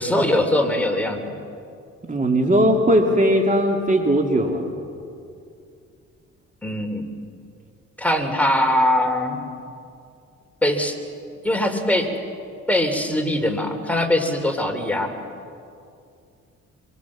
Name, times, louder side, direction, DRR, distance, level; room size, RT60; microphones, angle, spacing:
voice 1, 0.0-1.4 6.6-7.1 8.0-9.4 10.6-11.0 11.4-12.1 12.7-15.1, left 1 dB, 5° left, 4 dB, 3.2 m, -21 dB
voice 2, 2.1-4.7, equal, 25° right, 2 dB, 2.7 m, -18 dB
26.5 x 24.0 x 7.4 m, 2.4 s
cardioid pair, 90°, 30 cm